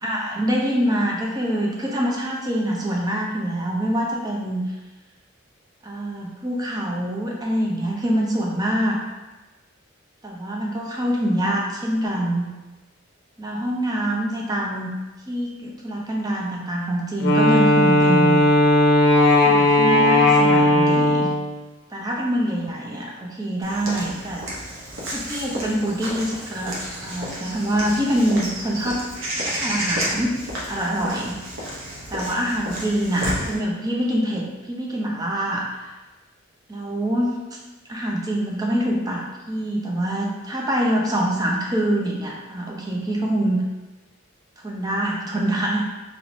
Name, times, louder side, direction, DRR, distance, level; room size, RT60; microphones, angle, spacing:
voice 1, 0.0-4.6 5.8-9.0 10.2-12.5 13.4-14.9 15.3-18.4 19.4-21.3 21.9-24.5 25.1-29.0 29.4-30.3 30.7-31.4 32.1-35.9 36.7-37.4 37.9-43.6 44.6-45.8, right 1 dB, 20° right, -2 dB, 0.5 m, -25 dB
Wind instrument woodwind instrument, 17.2-21.5, left 1 dB, 60° left, 0.6 m, -16 dB
Walk footsteps / Bird vocalization bird call bird song, 23.6-33.6, equal, 70° right, 0.8 m, -31 dB
3.5 x 2.9 x 2.6 m, 1.1 s
head